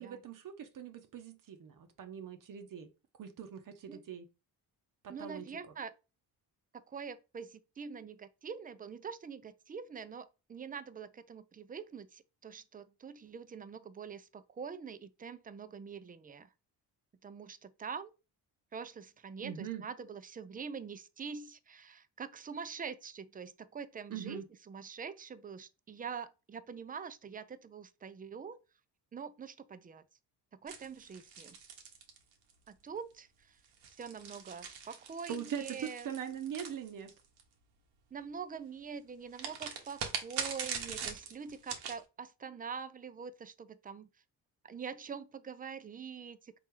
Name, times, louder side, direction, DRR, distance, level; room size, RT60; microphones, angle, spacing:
voice 1, 0.0-2.9 3.2-4.3 5.0-5.5 19.4-19.8 24.1-24.5 35.3-37.1, right 8 dB, 50° right, 0.8 m, -42 dB
voice 2, 5.1-5.9 6.7-16.5 17.2-18.1 18.7-28.6 29.1-30.1 30.6-31.6 32.7-33.6 34.0-36.1 38.1-44.1 44.6-46.5, right 6 dB, 20° right, 0.4 m, -45 dB
sound 1, 30.7-32.7 33.6-37.4 39.3-42.0, right 6 dB, 85° right, 1.1 m, -42 dB
4.1 x 3.0 x 3.7 m
cardioid pair, 85°, 40 cm